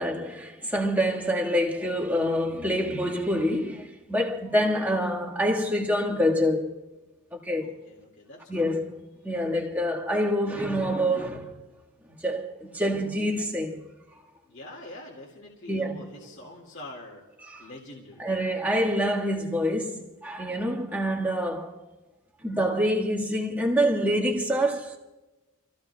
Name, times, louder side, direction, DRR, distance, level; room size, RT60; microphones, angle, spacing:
voice 1, 0.0-6.7 7.3-7.7 8.5-9.0 9.2-11.6 12.2-13.8 15.7-16.0 17.5-17.7 18.2-21.7 22.4-25.0, equal, 10° right, 1.7 m, -26 dB
voice 2, 7.6-8.8 14.5-17.2 17.6-18.4, left 1 dB, 60° left, 2.2 m, -44 dB
29.5 x 15.0 x 2.3 m
head